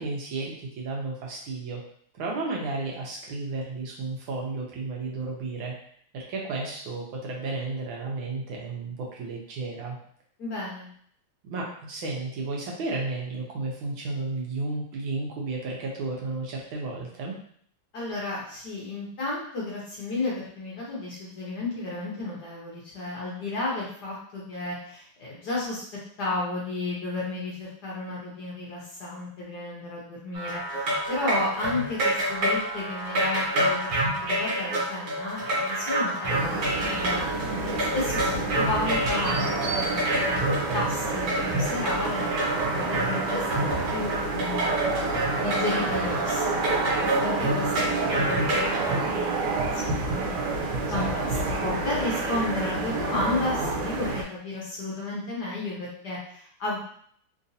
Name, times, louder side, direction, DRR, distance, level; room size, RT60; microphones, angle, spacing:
voice 1, 0.0-1.8 2.1-5.7 6.1-10.0 11.5-17.4 50.9-51.4, right 3 dB, 70° right, -2 dB, 1.4 m, -33 dB
voice 2, 10.4-10.9 17.9-25.8 26.2-40.5 40.7-51.3 51.6-56.8, left 2 dB, 60° left, -6 dB, 1.2 m, -33 dB
sound 1, 30.3-49.0, right 1 dB, 55° right, 1.6 m, -28 dB
sound 2, 36.3-54.2, right 3 dB, 90° right, 1.6 m, -29 dB
3.8 x 2.6 x 2.6 m, 0.63 s
omnidirectional pair, 2.4 m